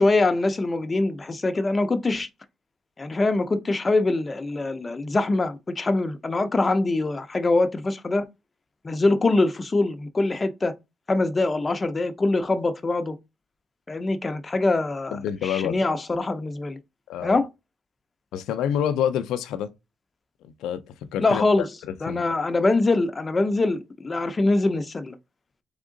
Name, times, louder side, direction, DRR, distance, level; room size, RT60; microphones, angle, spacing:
voice 1, 0.0-2.3 3.0-8.3 8.8-10.7 11.1-13.2 13.9-16.8 17.2-17.5 21.2-21.7 22.0-25.2, left 2 dB, 25° left, 0.6 m, -23 dB
voice 2, 15.1-15.9 17.1-17.4 18.3-19.7 20.4-20.8 21.1-21.6 22.1-22.2, left 9 dB, 85° left, 0.4 m, -27 dB
3.6 x 3.5 x 3.7 m
cardioid pair, 90°, 0 cm